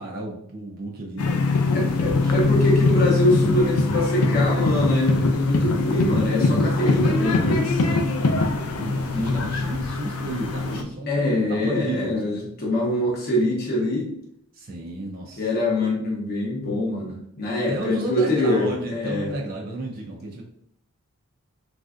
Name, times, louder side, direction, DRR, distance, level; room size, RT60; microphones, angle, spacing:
voice 1, 0.0-2.4 8.4-12.5 14.5-15.5 17.7-20.4, right 1 dB, 40° right, -1 dB, 0.4 m, -32 dB
sound 1, 1.2-10.8, left 3 dB, 80° left, 0.4 m, -22 dB
voice 2, 1.7-7.8 9.1-9.4 11.1-14.1 15.4-19.3, left 1 dB, 45° left, -3 dB, 0.7 m, -24 dB
3.2 x 2.5 x 2.4 m, 0.71 s
head